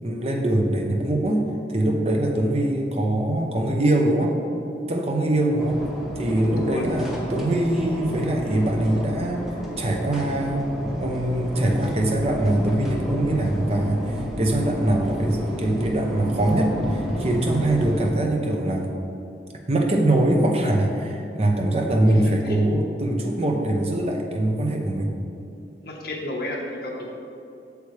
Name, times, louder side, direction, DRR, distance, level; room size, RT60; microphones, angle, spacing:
voice 1, 0.0-4.4 4.9-5.8 6.2-9.5 9.8-10.7 11.0-18.9 19.7-25.1, right 1 dB, 35° right, 1 dB, 0.8 m, -23 dB
sound 1, 5.6-18.1, equal, ahead, 0.8 m, -31 dB
voice 2, 6.3-6.9 22.2-22.6 25.8-27.1, left 1 dB, 55° left, -2 dB, 1.2 m, -32 dB
8.3 x 6.8 x 3.3 m, 2.7 s
head